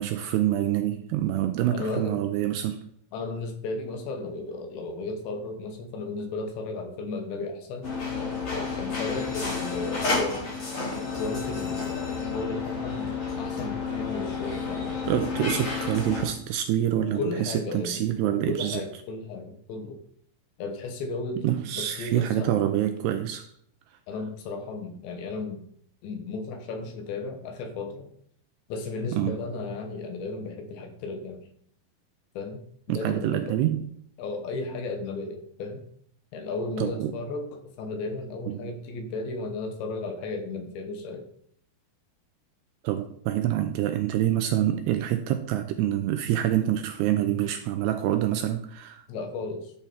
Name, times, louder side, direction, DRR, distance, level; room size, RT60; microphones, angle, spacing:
voice 1, 0.0-2.8 15.1-18.8 21.4-23.5 29.1-29.4 32.9-33.9 36.8-37.2 38.5-38.7 42.8-49.0, right 12 dB, 85° right, 2.5 m, -26 dB
voice 2, 1.7-2.2 3.1-7.9 8.8-10.5 10.9-13.1 13.4-15.0 17.2-18.1 18.3-20.0 20.6-22.5 24.1-25.6 26.0-28.1 28.7-31.4 32.4-32.6 32.9-33.6 34.2-35.8 36.3-41.3 47.2-47.3 49.1-49.7, left 3 dB, 75° left, 3.7 m, -34 dB
sound 1, 7.8-16.3, left 4 dB, 35° left, 3.3 m, -31 dB
12.5 x 7.0 x 4.4 m
omnidirectional pair, 5.3 m